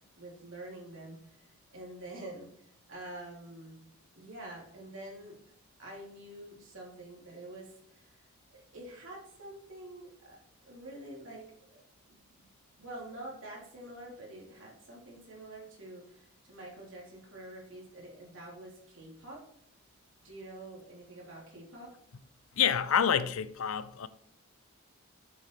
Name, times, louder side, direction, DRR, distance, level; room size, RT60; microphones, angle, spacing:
voice 1, 0.0-3.8 4.1-5.4 5.8-8.2 8.5-11.8 12.1-12.5 12.8-19.4 20.2-21.9, right 1 dB, 65° right, 3.0 m, -47 dB
voice 2, 22.6-24.1, left 8 dB, 80° left, 0.5 m, -27 dB
8.0 x 5.9 x 4.6 m
head